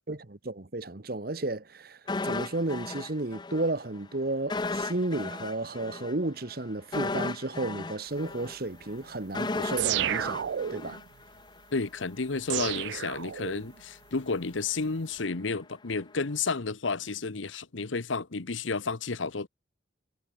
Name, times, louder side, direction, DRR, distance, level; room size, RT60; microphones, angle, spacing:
voice 1, 0.1-10.4 10.7-11.0, right 2 dB, 50° right, 1.1 m, -33 dB
sound 1, 2.1-3.7 4.0-4.1 4.5-11.6 11.9-12.0, left 3 dB, 20° left, 0.5 m, -35 dB
sound 2, 9.8-11.0 12.5-13.8, right 10 dB, 65° right, 0.4 m, -31 dB
voice 2, 11.7-19.5, left 4 dB, 85° left, 1.1 m, -31 dB
head